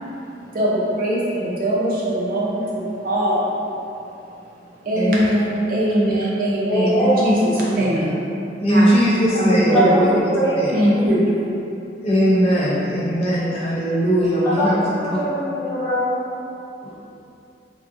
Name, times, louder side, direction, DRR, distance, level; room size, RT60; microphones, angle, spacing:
voice 1, 0.2-3.5 4.8-8.2 8.7-8.9 9.3-10.2 10.7-11.2, equal, 55° right, -6 dB, 0.5 m, -21 dB
voice 2, 6.7-7.5 8.0-8.1 9.7-10.9 14.4-14.7 15.0-16.2, equal, 20° left, -12 dB, 1.1 m, -22 dB
voice 3, 8.6-9.8 10.6-10.7 12.0-14.8 16.8-16.9, equal, 35° left, -9 dB, 0.5 m, -19 dB
3.6 x 2.6 x 2.4 m, 2.7 s
head